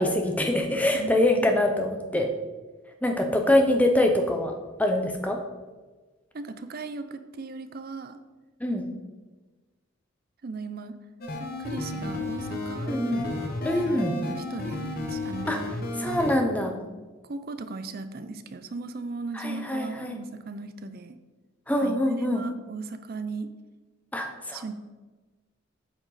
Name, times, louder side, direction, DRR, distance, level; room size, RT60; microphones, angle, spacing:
voice 1, 0.0-2.3 3.0-4.5 4.8-5.4 8.6-8.8 12.9-13.2 13.6-14.1 15.5-15.6 16.0-16.7 19.3-20.2 21.7-22.4 24.1-24.7, left 1 dB, 5° left, 3 dB, 0.7 m, -24 dB
voice 2, 6.3-8.2 10.4-11.0 11.6-12.9 14.2-15.8 17.2-21.2 21.8-23.5 24.5-24.7, right 3 dB, 45° right, 10 dB, 0.5 m, -37 dB
sound 1, 11.2-16.4, left 2 dB, 45° left, 0.9 m, -32 dB
8.7 x 5.1 x 4.1 m, 1.3 s
head